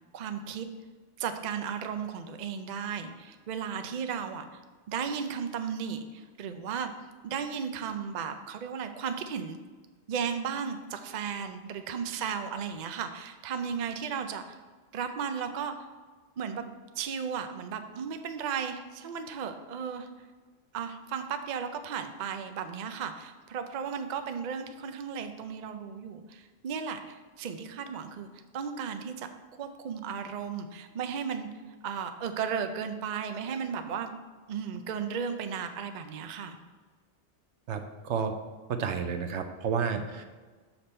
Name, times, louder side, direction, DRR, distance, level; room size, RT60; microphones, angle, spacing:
voice 1, 0.1-0.7 1.2-4.6 4.9-6.9 7.2-9.6 10.1-14.6 14.9-15.7 16.4-20.1 20.7-28.3 28.5-29.3 29.6-31.5 31.8-34.1 34.5-36.6, right 7 dB, 50° right, 7 dB, 0.5 m, -35 dB
voice 2, 37.7-38.3 38.8-40.3, right 6 dB, 75° right, 7 dB, 1.0 m, -31 dB
6.8 x 5.9 x 4.3 m, 1.4 s
omnidirectional pair, 1.2 m